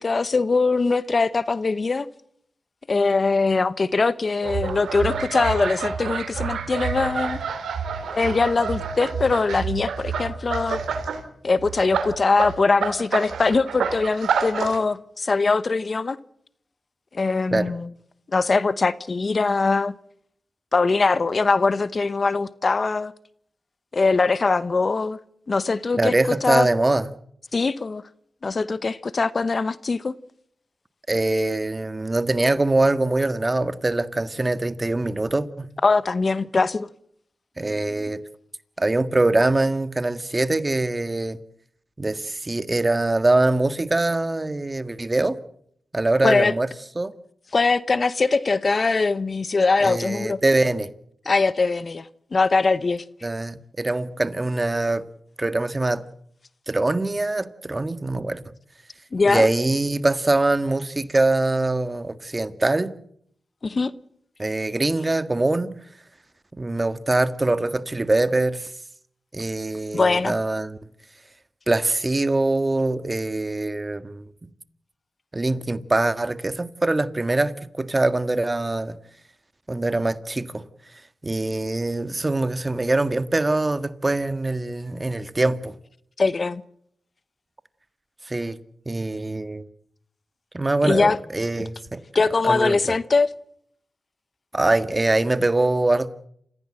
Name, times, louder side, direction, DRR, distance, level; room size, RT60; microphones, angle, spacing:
voice 1, 0.0-2.1 2.9-7.4 8.1-10.8 11.4-16.2 17.1-17.9 18.3-20.0 20.7-23.1 23.9-25.2 25.5-26.1 26.4-26.7 27.5-28.0 28.4-30.1 35.8-36.9 46.2-46.5 47.5-50.4 51.3-53.0 59.1-59.5 63.6-63.9 69.9-70.4 86.2-86.6 90.8-91.2 92.1-93.3, left 4 dB, 55° left, 0.9 m, -22 dB
sound 1, 4.4-11.2 11.6-14.8, right 6 dB, 85° right, 2.6 m, -28 dB
voice 2, 26.0-27.1 31.1-35.7 37.6-38.2 38.8-41.4 42.0-45.4 45.9-46.7 46.9-47.1 49.8-50.9 53.2-55.0 55.4-56.0 56.7-58.4 59.3-62.9 64.4-65.7 66.5-68.7 69.3-70.8 71.7-74.3 75.3-78.9 79.7-80.6 81.2-85.7 88.2-88.6 88.8-89.6 90.5-92.0 92.4-93.0 94.5-96.3, right 2 dB, 30° right, 1.7 m, -23 dB
28.5 x 15.5 x 7.7 m
cardioid pair, 45°, 0 cm